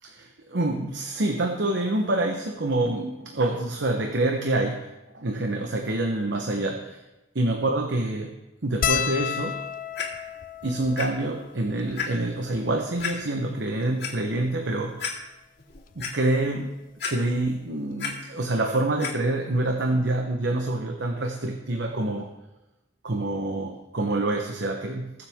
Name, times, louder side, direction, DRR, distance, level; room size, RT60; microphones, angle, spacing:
voice 1, 0.0-4.9 5.1-7.0 7.3-8.4 8.6-9.6 10.6-15.1 16.0-16.8 17.1-22.3 23.0-25.1, right 2 dB, 85° right, 3 dB, 1.0 m, -26 dB
sound 1, 8.8-13.4 14.2-14.3 14.5-14.7 15.9-16.1 17.6-17.7 17.9-18.1, left 9 dB, 50° left, 0.5 m, -33 dB
Clock, 9.9-10.0 11.0-11.1 11.5-11.6 12.0-12.1 13.0-13.1 13.8-14.1 14.6-14.7 15.0-15.1 15.6-16.1 17.0-17.5 17.8-18.1 19.0-19.1 19.8-19.9, left 6 dB, 65° left, 2.3 m, -31 dB
21.0 x 7.4 x 3.6 m, 1.0 s
head